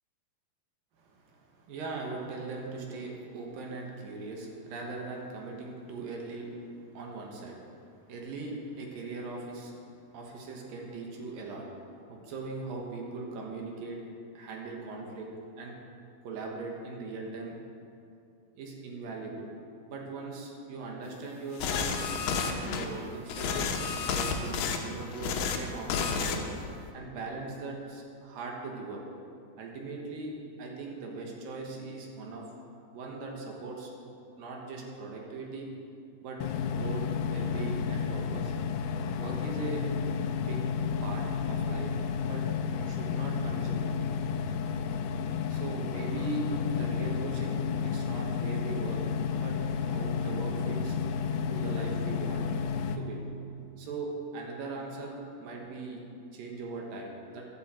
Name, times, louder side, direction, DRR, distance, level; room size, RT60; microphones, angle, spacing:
voice 1, 1.0-9.9 10.1-14.0 14.3-15.3 15.6-15.8 16.2-17.6 18.6-19.5 19.9-22.0 22.4-23.6 24.1-26.5 26.9-29.0 29.6-32.5 32.9-33.9 34.4-35.7 36.2-36.4 36.7-38.5 39.2-39.8 40.4-40.6 41.0-41.9 42.3-42.5 42.8-43.9 45.5-49.0 49.4-51.0 51.3-52.4 52.9-53.2 53.8-56.0 56.3-57.5, right 3 dB, 70° right, 0 dB, 3.1 m, -40 dB
sound 1, 21.6-22.9 23.3-24.8 25.1-25.6 25.9-26.4 26.6-26.9, left 5 dB, 75° left, 2.6 m, -30 dB
sound 2, 36.4-53.0, left 6 dB, 90° left, 2.5 m, -31 dB
15.0 x 11.0 x 4.4 m, 2.5 s
omnidirectional pair, 4.4 m